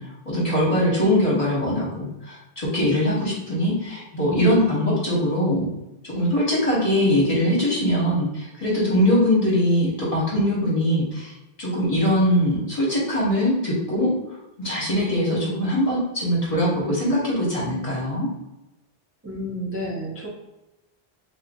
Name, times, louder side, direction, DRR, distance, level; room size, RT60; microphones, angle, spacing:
voice 1, 0.0-5.7 6.0-11.3 11.6-18.3, equal, 35° left, -5 dB, 1.1 m, -22 dB
voice 2, 19.2-20.3, equal, 15° right, -6 dB, 0.5 m, -30 dB
3.5 x 2.7 x 2.6 m, 0.95 s
omnidirectional pair, 1.1 m